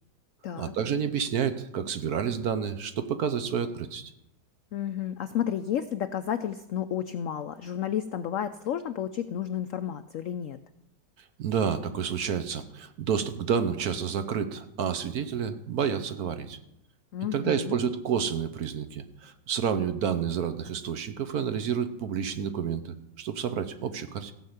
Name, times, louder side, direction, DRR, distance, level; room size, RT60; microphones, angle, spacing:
voice 1, 0.6-4.1 11.4-16.6 17.3-24.3, right 7 dB, 60° right, 10 dB, 1.2 m, -29 dB
voice 2, 4.7-10.6 17.1-17.8, left 9 dB, 85° left, 11 dB, 0.7 m, -31 dB
15.5 x 5.6 x 8.0 m, 0.84 s
omnidirectional pair, 2.0 m